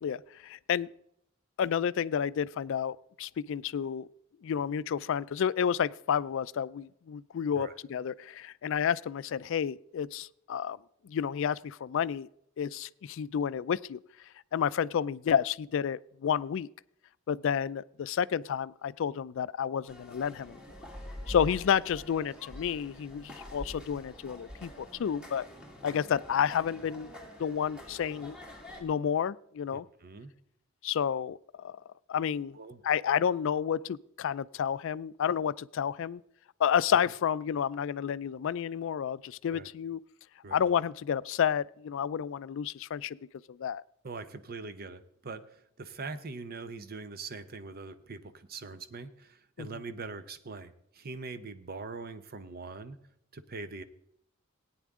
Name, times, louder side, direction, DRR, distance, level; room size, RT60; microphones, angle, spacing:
voice 1, 0.0-0.9 1.6-4.1 4.4-10.8 11.0-12.3 12.6-14.0 14.5-16.7 17.3-20.6 21.3-25.4 25.8-27.1 27.4-28.4 28.8-29.9 30.8-31.8 32.1-32.6 32.8-36.2 36.6-40.0 40.5-43.2 43.5-43.8 49.6-49.7, left 8 dB, 65° left, 0.3 m, -30 dB
sound 1, 19.9-28.8, left 1 dB, 5° right, 2.0 m, -46 dB
voice 2, 29.7-30.3 32.5-32.8 39.5-39.7 40.4-40.6 44.0-53.0 53.3-53.8, right 4 dB, 50° right, 0.8 m, -42 dB
17.5 x 9.3 x 3.6 m
head